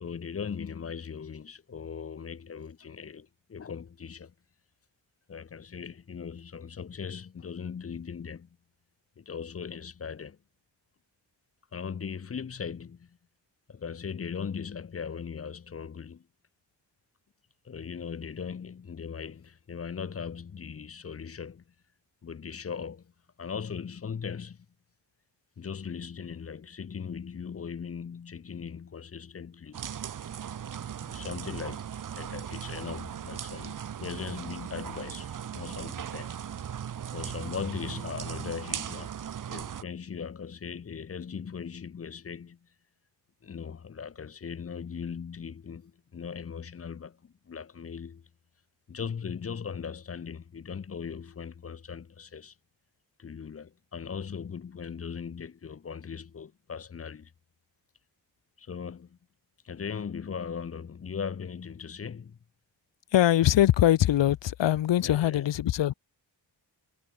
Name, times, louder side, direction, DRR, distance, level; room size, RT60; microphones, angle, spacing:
voice 1, 0.0-4.3 5.3-8.5 9.2-10.4 11.7-13.2 13.7-16.2 17.6-21.6 22.2-23.1 23.4-24.7 25.6-29.8 31.0-36.3 37.1-39.2 39.5-42.7 43.4-48.3 48.9-52.5 53.2-57.3 58.6-59.2 59.6-62.4 65.0-65.5, left 6 dB, 30° left, 0.6 m, -39 dB
sound 1, 29.7-39.8, right 9 dB, 45° right, 0.7 m, -38 dB
voice 2, 63.1-65.9, left 12 dB, 70° left, 0.7 m, -22 dB
cardioid pair, 65°, 45 cm